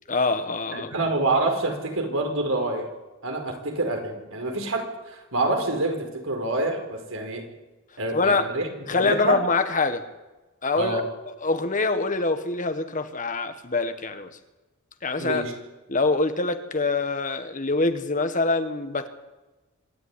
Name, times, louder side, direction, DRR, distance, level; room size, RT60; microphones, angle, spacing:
voice 1, 0.1-0.9 8.1-8.5 8.9-10.0 10.6-11.0 11.4-14.3 15.0-15.4 15.9-19.1, left 3 dB, 40° left, 9 dB, 1.6 m, -24 dB
voice 2, 0.7-2.9 3.2-7.4 8.0-9.4 10.7-11.0 15.2-15.5, right 2 dB, 80° right, 3 dB, 5.2 m, -27 dB
26.0 x 12.5 x 10.0 m, 1.1 s
head